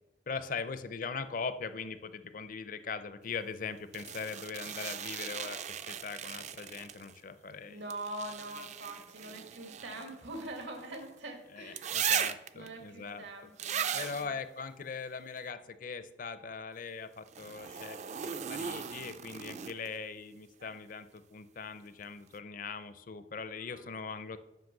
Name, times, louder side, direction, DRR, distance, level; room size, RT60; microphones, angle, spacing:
voice 1, 0.3-7.8 11.5-13.2 13.9-24.4, left 5 dB, 45° left, 12 dB, 0.5 m, -41 dB
sound 1, 3.9-7.2 7.9-11.1 11.8-12.7 13.6-14.3 17.3-20.0 21.9-22.0, right 8 dB, 40° right, 0.4 m, -37 dB
voice 2, 7.7-12.2 12.5-14.3 20.6-20.7 23.7-23.9, right 1 dB, 85° right, 3 dB, 2.0 m, -44 dB
7.8 x 5.9 x 6.0 m, 0.97 s
head